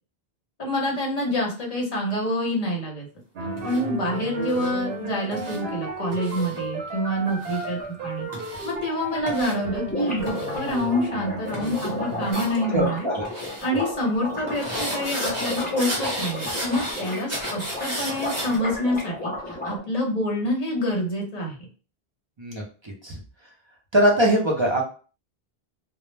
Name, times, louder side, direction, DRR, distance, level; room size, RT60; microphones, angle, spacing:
voice 1, 0.6-3.1 3.6-8.3 8.6-13.1 13.6-19.3 19.6-21.6, left 1 dB, 45° left, 0 dB, 0.7 m, -27 dB
sound 1, 3.4-12.3, right 3 dB, 75° right, 0.8 m, -33 dB
sound 2, 3.6-3.8 4.5-4.7 5.3-5.6 6.1-6.6 7.3-7.6 8.3-8.7 9.3-9.5 10.3-10.8 11.5-11.9 12.2-12.5 13.2-13.7 14.5-18.6, equal, 15° right, 0.9 m, -33 dB
sound 3, 8.9-9.0 9.2-9.3 9.5-19.8, left 1 dB, 10° left, 0.5 m, -33 dB
voice 2, 12.7-13.3 22.4-23.2 23.9-24.8, equal, 40° right, -2 dB, 0.5 m, -22 dB
2.1 x 2.0 x 3.1 m, 0.38 s
omnidirectional pair, 1.0 m